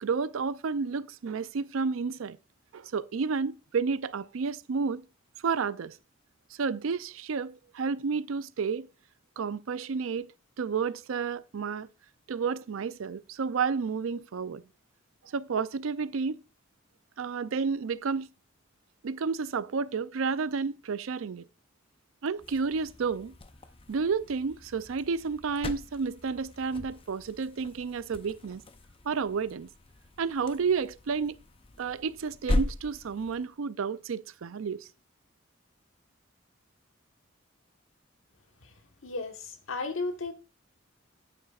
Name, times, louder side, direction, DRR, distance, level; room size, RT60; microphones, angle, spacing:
voice 1, 0.0-2.4 2.7-5.0 5.4-6.0 6.6-8.9 9.4-10.3 10.6-11.9 12.3-14.6 15.2-16.4 17.2-18.3 19.0-21.5 22.2-23.3 23.9-28.6 29.0-29.7 30.2-31.4 31.8-34.9, right 5 dB, 85° right, 0.5 m, -31 dB
sound 1, 22.4-33.5, left 1 dB, 25° left, 0.6 m, -38 dB
voice 2, 39.0-40.3, left 3 dB, 80° left, 1.4 m, -34 dB
11.0 x 9.1 x 2.4 m
head